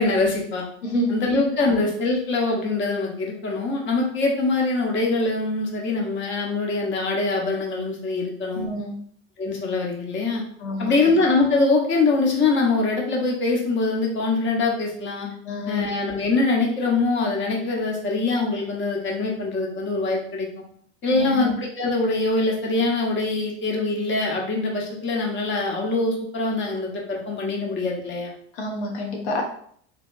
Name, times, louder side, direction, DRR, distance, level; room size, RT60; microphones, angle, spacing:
voice 1, 0.0-0.6 1.1-8.7 9.4-10.4 10.8-15.3 15.7-20.5 21.0-28.3, left 3 dB, 35° left, -1 dB, 1.1 m, -23 dB
voice 2, 0.8-1.2 1.6-1.8 8.5-9.0 10.6-11.2 15.5-15.8 21.1-21.5 28.5-29.4, left 1 dB, 90° left, 0 dB, 0.7 m, -28 dB
3.3 x 2.9 x 2.5 m, 0.62 s
hypercardioid pair, 90°, 32 cm